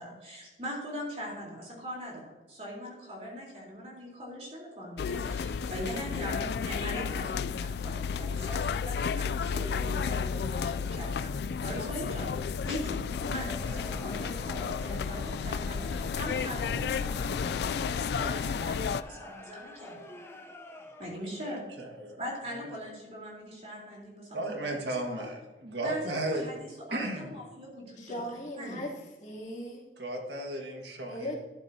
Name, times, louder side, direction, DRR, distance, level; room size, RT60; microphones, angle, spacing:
voice 1, 0.0-11.3 11.6-13.0 13.3-20.0 21.0-21.6 22.2-24.8 25.1-25.3 25.8-28.2 28.6-28.9, equal, 35° right, -3 dB, 3.7 m, -41 dB
sound 1, 5.0-19.0, left 6 dB, 70° left, 0.3 m, -32 dB
Crowd, 12.9-21.4, left 1 dB, 15° left, 0.7 m, -47 dB
voice 2, 21.4-22.2 24.3-26.5 26.9-27.4 30.0-31.3, right 1 dB, 80° right, 2 dB, 1.7 m, -35 dB
voice 3, 28.0-29.8 31.1-31.3, equal, 45° left, -5 dB, 3.0 m, -38 dB
12.5 x 11.5 x 2.8 m, 1.2 s
head